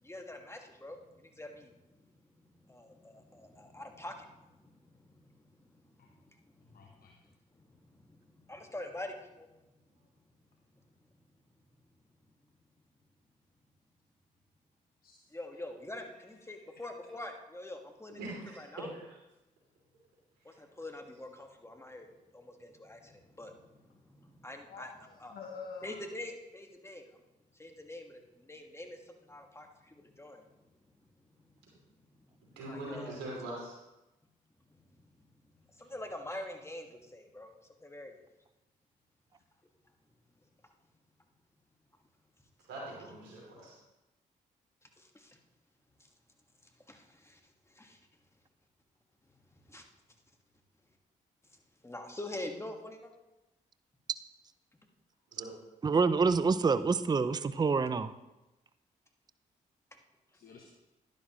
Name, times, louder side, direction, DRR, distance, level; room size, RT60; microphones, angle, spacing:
voice 1, 0.0-2.0 2.6-5.4 5.6-7.0 7.5-9.5 15.3-18.2 18.6-18.9 20.4-22.1 22.3-24.9 25.2-25.4 25.8-27.1 27.5-30.4 32.0-32.1 32.5-33.2 34.9-35.0 35.7-37.5 37.8-38.1 45.0-45.4 46.9-47.4 47.7-48.0 49.7-49.9 51.8-53.1, left 1 dB, 15° left, 3 dB, 1.7 m, -45 dB
voice 2, 6.6-7.1 15.0-15.2 16.0-16.7 24.7-26.0 60.3-60.7, left 5 dB, 60° left, 2 dB, 1.1 m, -49 dB
voice 3, 18.2-19.2 32.6-33.8 42.7-43.7 55.3-55.5, right 1 dB, 85° right, -4 dB, 3.1 m, -42 dB
voice 4, 55.8-58.1, right 4 dB, 25° right, 13 dB, 0.5 m, -27 dB
11.0 x 10.5 x 3.1 m, 0.99 s
hypercardioid pair, 45°, 17 cm